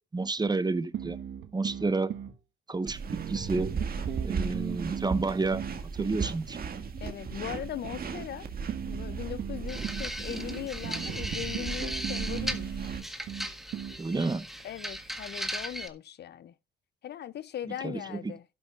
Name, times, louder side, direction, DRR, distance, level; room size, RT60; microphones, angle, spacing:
voice 1, 0.1-1.2 1.5-2.1 2.7-3.0 3.3-3.7 4.2-5.6 5.9-6.6 14.0-14.4 17.8-18.3, right 3 dB, 20° right, 1.0 m, -30 dB
sound 1, 0.9-2.4 3.1-6.3 8.7-10.1 10.8-14.0, right 9 dB, 75° right, 1.4 m, -38 dB
sound 2, 2.9-13.0, right 5 dB, 50° right, 1.9 m, -36 dB
voice 2, 7.0-8.5 8.9-12.9 14.6-16.5 17.0-18.4, left 11 dB, 55° left, 0.5 m, -39 dB
sound 3, 9.7-15.9, equal, ahead, 1.6 m, -37 dB
12.5 x 11.5 x 2.4 m
cardioid pair, 90°, 20 cm